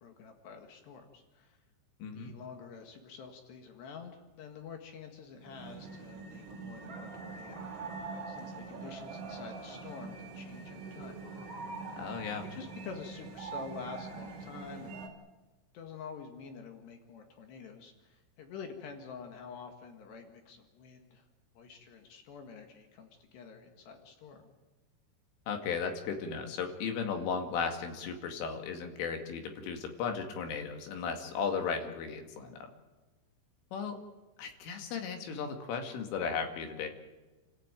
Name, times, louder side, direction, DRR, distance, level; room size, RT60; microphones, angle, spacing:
voice 1, 0.0-1.6 2.1-7.7 8.3-11.2 12.4-15.0 15.7-21.3 21.6-24.5, left 5 dB, 65° left, 5 dB, 3.7 m, -48 dB
voice 2, 2.0-2.3 12.0-12.4 25.5-32.7 33.7-34.0 34.4-36.9, left 6 dB, 85° left, 5 dB, 4.8 m, -35 dB
sound 1, 5.3-15.1, right 4 dB, 40° right, 2.9 m, -43 dB
29.5 x 14.5 x 9.1 m, 1.2 s
omnidirectional pair, 5.5 m